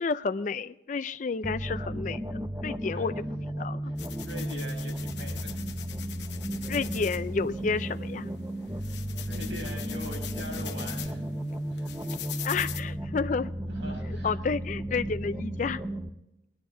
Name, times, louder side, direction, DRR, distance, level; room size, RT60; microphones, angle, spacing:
voice 1, 0.0-3.1 3.6-3.9 6.7-8.3 12.4-13.5 14.1-15.8, left 4 dB, 40° left, 12 dB, 0.4 m, -31 dB
sound 1, 1.4-16.1, right 1 dB, 15° right, 0.5 m, -34 dB
sound 2, 4.0-12.8, left 9 dB, 70° left, 0.9 m, -43 dB
voice 2, 4.2-5.7 8.7-8.9 9.3-11.4 11.7-11.9 13.6-14.4, equal, 80° right, -1 dB, 5.5 m, -42 dB
20.5 x 10.5 x 3.8 m, 0.93 s
head